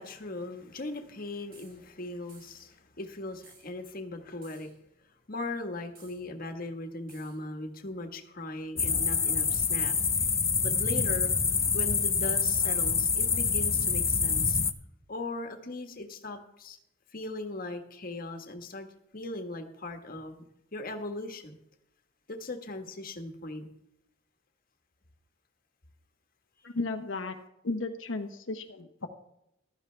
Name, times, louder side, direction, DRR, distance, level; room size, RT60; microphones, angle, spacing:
voice 1, 0.0-4.7 5.3-10.3 10.6-11.3 11.7-14.6 15.1-16.8 17.1-18.9 19.1-20.4 20.7-21.6 22.3-23.7, left 2 dB, 50° left, 5 dB, 1.5 m, -39 dB
sound 1, 1.5-1.8 2.3-2.7 3.4-3.7 4.4-4.8 6.0-6.2 7.1-7.4, right 5 dB, 50° right, 3.5 m, -57 dB
sound 2, 8.8-14.7, left 5 dB, 15° left, 0.5 m, -26 dB
voice 2, 26.6-27.4 27.6-29.1, left 3 dB, 85° left, 5 dB, 1.0 m, -34 dB
15.0 x 12.5 x 3.4 m, 0.80 s
head